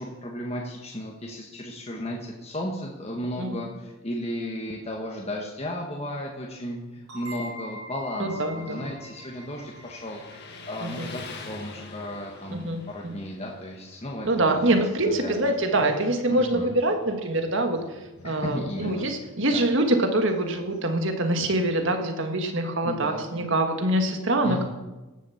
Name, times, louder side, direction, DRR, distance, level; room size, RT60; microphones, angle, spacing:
voice 1, 0.0-10.2 10.7-15.5 16.3-16.7 18.2-19.6 22.8-23.2 24.4-24.7, equal, 30° left, -1 dB, 1.4 m, -34 dB
sound 1, 7.1-12.5, left 1 dB, 85° right, 4.6 m, -44 dB
voice 2, 8.2-8.9 10.8-10.9 12.5-13.1 14.2-18.0 18.2-24.6, right 1 dB, 55° right, 4 dB, 1.8 m, -25 dB
Motorcycle, 8.5-21.1, left 3 dB, 45° left, 1.7 m, -47 dB
17.0 x 7.2 x 7.1 m, 1.1 s
head